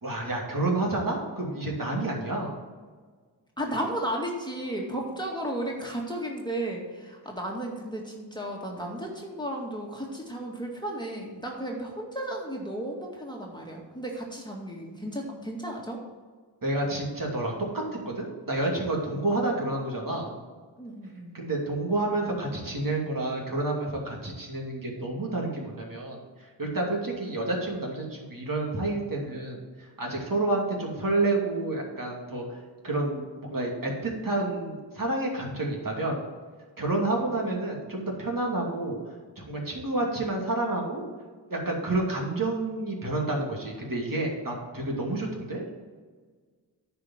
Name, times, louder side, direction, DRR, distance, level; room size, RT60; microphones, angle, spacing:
voice 1, 0.0-2.5 16.6-20.3 21.3-26.2 26.6-32.6 32.8-36.2 36.8-39.0 39.4-41.0 41.5-45.6, right 2 dB, 45° right, -1 dB, 2.7 m, -29 dB
voice 2, 3.6-16.0 19.1-19.2 20.8-21.3, right 1 dB, 10° left, -1 dB, 2.0 m, -34 dB
9.7 x 5.2 x 7.5 m, 1.5 s
cardioid pair, 55°, 44 cm